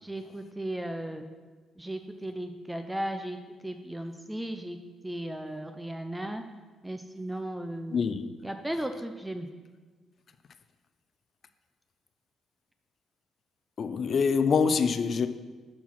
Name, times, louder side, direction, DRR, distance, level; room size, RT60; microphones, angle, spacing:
voice 1, 0.0-1.3 1.8-3.4 3.6-4.8 5.0-6.4 6.8-8.0 8.4-9.5, right 1 dB, 10° right, 6 dB, 0.4 m, -35 dB
voice 2, 7.9-8.3 13.8-15.3, left 5 dB, 50° left, 10 dB, 0.4 m, -25 dB
5.7 x 4.6 x 5.8 m, 1.4 s
cardioid pair, 90°, 0 cm